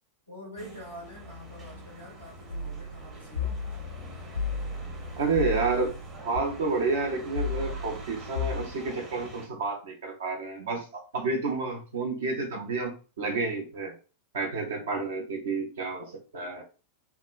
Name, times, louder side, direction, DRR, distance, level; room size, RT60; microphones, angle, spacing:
voice 1, 0.3-3.6, left 1 dB, 85° right, 1.2 m, -45 dB
sound 1, 0.6-9.5, equal, 20° right, 0.8 m, -45 dB
sound 2, 2.5-6.4 7.4-8.7, left 4 dB, 80° left, 0.4 m, -34 dB
voice 2, 5.2-6.0 6.2-13.9 14.3-16.6, right 3 dB, 60° right, 0.6 m, -30 dB
2.8 x 2.2 x 2.3 m
figure-of-eight pair, 90°, 0 cm